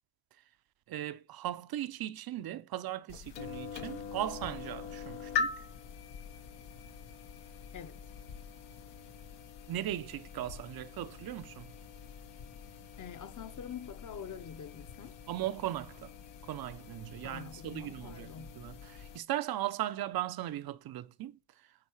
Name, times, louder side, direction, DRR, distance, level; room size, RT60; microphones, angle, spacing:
voice 1, 0.9-5.7 9.7-11.7 15.3-16.1 16.4-21.4, right 13 dB, 55° right, 0.7 m, -38 dB
sound 1, 3.1-19.2, left 6 dB, 70° left, 1.3 m, -43 dB
voice 2, 13.0-15.2 17.2-18.5, left 7 dB, 40° left, 1.1 m, -45 dB
9.8 x 3.7 x 4.7 m
supercardioid pair, 60°, 44 cm